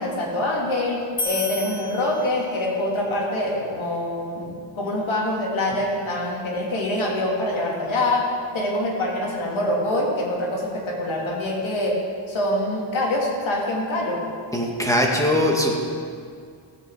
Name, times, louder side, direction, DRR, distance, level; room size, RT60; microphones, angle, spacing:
voice 1, 0.0-12.0 12.3-14.2, left 1 dB, 70° left, -3 dB, 3.1 m, -25 dB
sound 1, 1.2-2.8, left 3 dB, 35° left, 1.5 m, -31 dB
voice 2, 14.5-15.8, left 1 dB, 5° left, -1 dB, 2.0 m, -21 dB
16.0 x 8.3 x 5.0 m, 2.2 s
cardioid pair, 100°, 49 cm